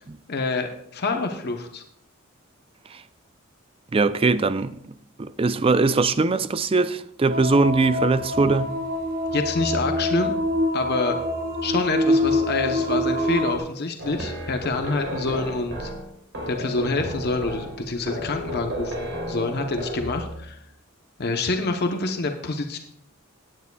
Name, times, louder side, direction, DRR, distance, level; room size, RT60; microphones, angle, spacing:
voice 1, 0.3-1.8 9.3-10.3 10.7-11.2 11.6-15.9 16.5-20.6 21.2-22.8, left 3 dB, 50° left, 0.9 m, -27 dB
voice 2, 3.9-8.7, right 3 dB, 25° right, 0.4 m, -21 dB
sound 1, 7.3-13.6, left 1 dB, 45° right, 1.4 m, -25 dB
sound 2, 14.0-20.6, equal, 85° right, 3.7 m, -33 dB
17.5 x 9.5 x 2.3 m
head